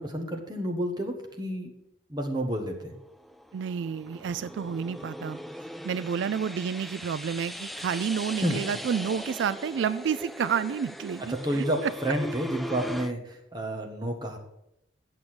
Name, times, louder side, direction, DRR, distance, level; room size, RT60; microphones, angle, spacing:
voice 1, 0.0-1.7 2.1-2.9 8.4-8.6 11.3-14.4, right 1 dB, 20° right, 2 dB, 1.5 m, -30 dB
sound 1, 3.0-13.1, equal, ahead, 0.3 m, -40 dB
voice 2, 3.5-5.4 5.8-11.9, right 7 dB, 80° right, 17 dB, 0.3 m, -30 dB
8.7 x 6.7 x 7.8 m, 0.82 s
head